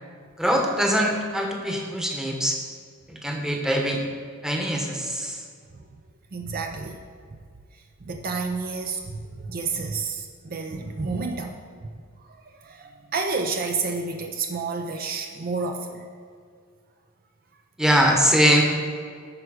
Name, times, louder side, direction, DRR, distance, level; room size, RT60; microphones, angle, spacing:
voice 1, 0.4-2.6 3.1-4.0 4.4-5.4 17.8-18.6, equal, 5° right, 1 dB, 1.0 m, -22 dB
voice 2, 6.3-7.0 8.0-11.6 12.5-16.1, right 4 dB, 45° right, 5 dB, 0.5 m, -30 dB
10.5 x 4.7 x 6.3 m, 2.1 s
head